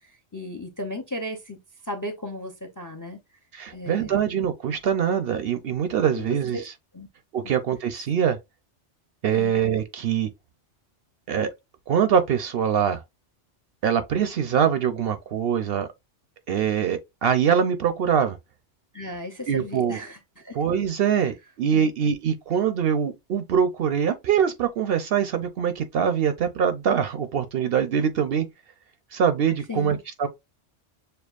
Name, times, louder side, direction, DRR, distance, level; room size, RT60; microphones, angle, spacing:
voice 1, 0.3-1.6 1.9-3.2 3.7-4.2 6.1-6.6 6.9-7.1 9.4-9.6 18.9-20.6 21.7-21.9 29.7-30.0, left 1 dB, 25° left, 0.5 m, -35 dB
voice 2, 3.5-6.7 7.3-8.4 9.2-10.3 11.3-11.5 11.9-13.0 13.8-15.9 16.5-18.4 19.5-20.0 20.5-28.5 29.1-30.3, right 8 dB, 65° right, 0.7 m, -23 dB
6.8 x 2.3 x 2.4 m
omnidirectional pair, 1.2 m